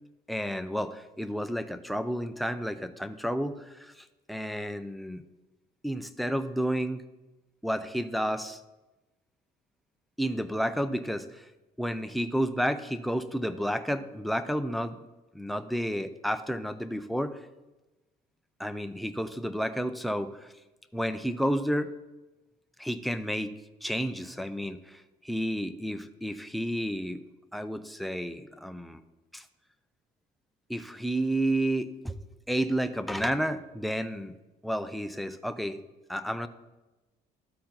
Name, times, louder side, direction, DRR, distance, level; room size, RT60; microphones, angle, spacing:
voice 1, 0.3-3.9 4.3-5.2 5.8-7.0 7.6-8.6 10.2-11.4 11.8-15.0 15.3-17.4 18.6-20.4 20.9-21.9 22.8-23.5 23.8-27.2 27.5-29.0 29.3-29.4 30.7-34.3 34.6-35.8 36.1-36.5, equal, ahead, 9 dB, 0.4 m, -31 dB
13.0 x 4.3 x 3.9 m, 1.1 s
cardioid pair, 110°, 17 cm